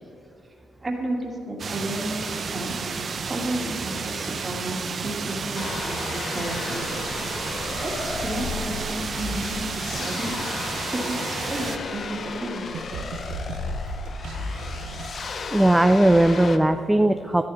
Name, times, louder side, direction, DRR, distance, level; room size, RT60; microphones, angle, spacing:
voice 1, 0.8-2.7 3.3-6.8 7.8-10.4 10.9-12.6, right 1 dB, 25° right, 0 dB, 2.4 m, -32 dB
sound 1, 1.6-11.8, right 5 dB, 45° right, 0.9 m, -31 dB
sound 2, 5.5-16.6, left 4 dB, 45° left, 0.8 m, -33 dB
sound 3, 9.8-11.6 12.7-15.1, right 5 dB, 85° right, 0.9 m, -39 dB
voice 2, 15.5-17.5, right 1 dB, 10° right, 8 dB, 0.4 m, -18 dB
13.5 x 12.5 x 4.3 m, 3.0 s
cardioid pair, 90°, 0 cm